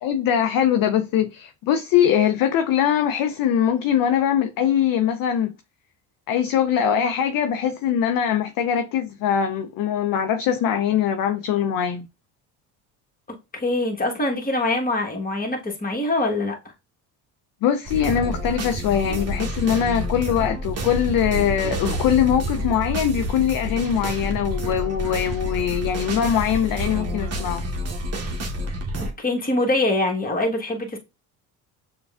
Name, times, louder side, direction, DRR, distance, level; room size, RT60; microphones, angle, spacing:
voice 1, 0.0-5.5 6.3-12.1 17.6-27.6, left 9 dB, 45° left, 0.5 m, -22 dB
voice 2, 13.5-16.6 29.2-31.0, left 2 dB, 20° left, 1.2 m, -24 dB
sound 1, 17.9-29.1, equal, 30° right, 1.0 m, -28 dB
6.7 x 2.3 x 2.3 m
hypercardioid pair, 60°, 49 cm